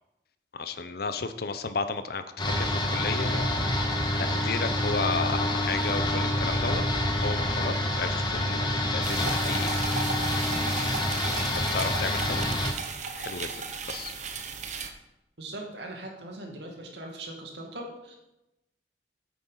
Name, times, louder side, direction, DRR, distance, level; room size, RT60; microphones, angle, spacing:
voice 1, 0.5-3.4 4.2-6.8 7.2-9.8 11.4-12.5 13.2-14.1, left 4 dB, 60° left, 11 dB, 0.8 m, -33 dB
sound 1, 2.4-12.7, left 1 dB, 25° left, 1.5 m, -27 dB
sound 2, 9.0-14.9, right 4 dB, 45° right, 1.0 m, -35 dB
voice 2, 15.4-18.2, right 1 dB, 75° right, 1 dB, 2.3 m, -40 dB
8.7 x 8.4 x 5.7 m, 0.94 s
head